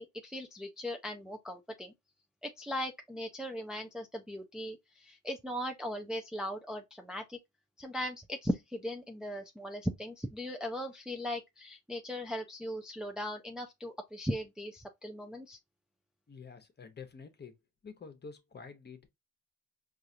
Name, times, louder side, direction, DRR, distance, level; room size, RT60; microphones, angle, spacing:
voice 1, 0.0-1.9 2.4-7.4 7.8-15.6, equal, ahead, 0.5 m, -38 dB
voice 2, 16.3-17.5 17.8-19.1, left 5 dB, 35° left, 0.9 m, -48 dB
4.6 x 2.5 x 2.7 m
cardioid pair, 90°, 30 cm